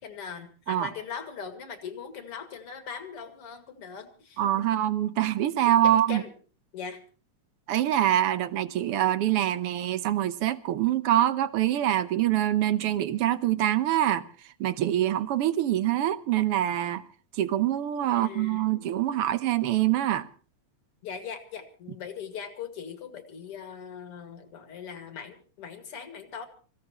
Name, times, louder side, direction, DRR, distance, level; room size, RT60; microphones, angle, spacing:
voice 1, 0.0-4.7 5.8-6.3 6.7-7.0 18.1-18.9 21.0-26.5, left 6 dB, 50° left, 2.9 m, -40 dB
voice 2, 4.4-6.2 7.7-14.2 14.6-17.0 17.3-20.3, right 12 dB, 65° right, 1.5 m, -25 dB
27.5 x 16.0 x 3.0 m
omnidirectional pair, 3.3 m